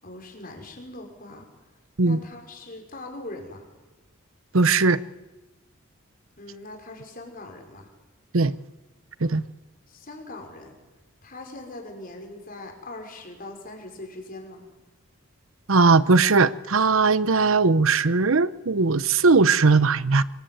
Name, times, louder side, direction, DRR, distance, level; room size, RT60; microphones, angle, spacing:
voice 1, 0.0-1.5 2.0-3.7 6.4-7.9 9.9-10.8 11.2-14.6, left 2 dB, 40° left, 3 dB, 5.6 m, -41 dB
voice 2, 4.5-5.0 8.3-8.5 9.2-9.4 15.7-20.2, right 4 dB, 75° right, 17 dB, 0.9 m, -19 dB
25.5 x 22.0 x 9.3 m, 1.1 s
head